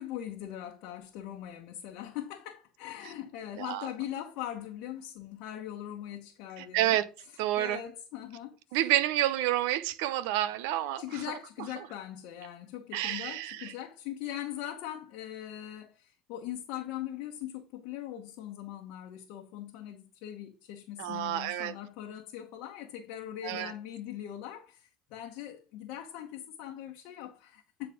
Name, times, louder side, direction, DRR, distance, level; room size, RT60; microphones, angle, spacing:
voice 1, 0.0-7.0 7.6-8.6 11.0-27.9, left 12 dB, 70° left, 1.0 m, -41 dB
voice 2, 3.6-3.9 6.6-7.1 7.4-7.8 8.7-11.0 12.9-13.7 21.0-21.7 23.4-23.7, right 13 dB, 75° right, 0.7 m, -29 dB
8.5 x 4.0 x 5.0 m
hypercardioid pair, 75°, 0 cm